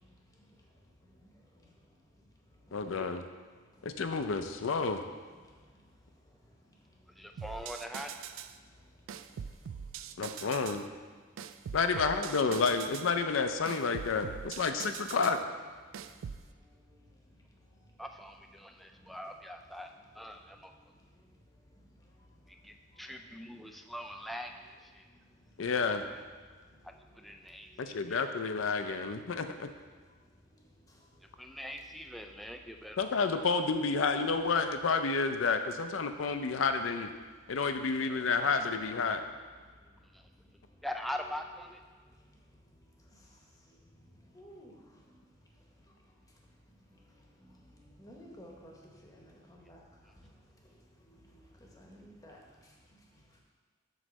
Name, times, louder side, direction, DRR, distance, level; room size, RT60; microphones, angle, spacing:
voice 1, 2.7-3.3 3.8-5.0 10.2-10.9 11.7-15.4 25.6-26.0 27.8-29.7 33.0-37.1 37.5-39.2, left 4 dB, 80° left, 8 dB, 0.5 m, -30 dB
voice 2, 7.2-8.1 11.9-12.3 18.0-20.7 22.5-25.1 26.8-28.3 31.4-33.0 40.1-40.3 40.8-41.8, equal, ahead, 4 dB, 0.3 m, -43 dB
sound 1, 7.4-8.6 9.1-10.8 11.4-13.1 13.7-15.4 15.9-16.5, right 8 dB, 75° right, 0.3 m, -43 dB
voice 3, 38.1-38.6 44.3-44.7 48.0-48.7 49.1-49.8 51.8-52.4, equal, 15° left, -1 dB, 1.0 m, -52 dB
7.7 x 3.1 x 6.2 m, 1.5 s
head